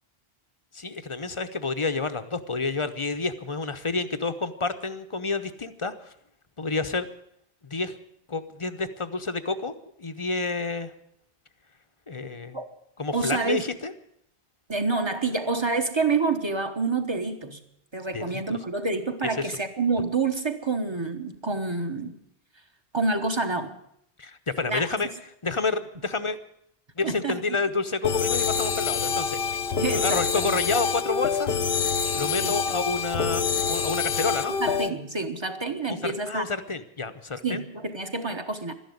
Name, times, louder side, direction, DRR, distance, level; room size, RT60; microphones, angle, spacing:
voice 1, 0.7-6.1 6.6-7.1 7.6-8.0 8.3-9.7 10.0-10.9 12.1-12.6 13.0-13.9 18.1-18.6 19.4-19.5 24.2-25.1 25.4-26.4 27.0-29.6 29.9-31.6 32.1-34.6 35.9-37.6, left 3 dB, 30° left, 10 dB, 0.9 m, -29 dB
voice 2, 13.1-13.6 14.7-17.6 17.9-22.1 22.9-23.7 24.7-24.9 27.0-27.4 29.8-30.6 32.4-32.6 34.6-36.4 37.4-38.7, right 3 dB, 25° right, 7 dB, 1.3 m, -28 dB
sound 1, 28.0-34.9, left 6 dB, 70° left, 1.1 m, -26 dB
13.0 x 11.0 x 9.5 m, 0.74 s
omnidirectional pair, 1.0 m